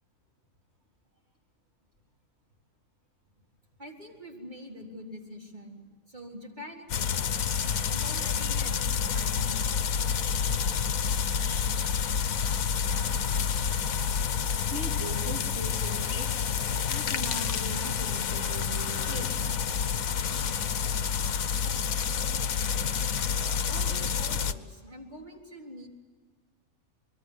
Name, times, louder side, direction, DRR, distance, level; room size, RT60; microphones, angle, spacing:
voice 1, 3.8-7.3 7.9-10.2 23.7-25.9, equal, 35° right, 0 dB, 4.1 m, -45 dB
sound 1, 6.9-24.5, left 7 dB, 85° left, 1.4 m, -29 dB
voice 2, 14.7-16.3 16.9-19.5, right 2 dB, 50° right, -1 dB, 3.0 m, -40 dB
25.5 x 22.5 x 8.2 m, 1.5 s
omnidirectional pair, 1.4 m